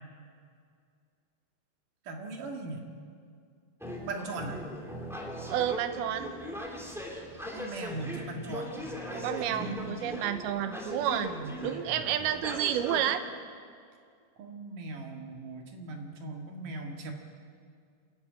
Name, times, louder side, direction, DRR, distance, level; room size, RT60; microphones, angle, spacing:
voice 1, 2.1-2.8 4.0-4.6 7.5-8.8 9.1-9.9 11.3-11.5 14.4-17.1, right 3 dB, 55° right, 2 dB, 3.3 m, -39 dB
sound 1, 3.8-13.1, equal, ahead, 1.7 m, -40 dB
voice 2, 5.5-6.3 9.2-11.3 11.6-13.2, right 10 dB, 75° right, 8 dB, 2.8 m, -30 dB
27.5 x 11.5 x 8.8 m, 2.2 s
omnidirectional pair, 4.7 m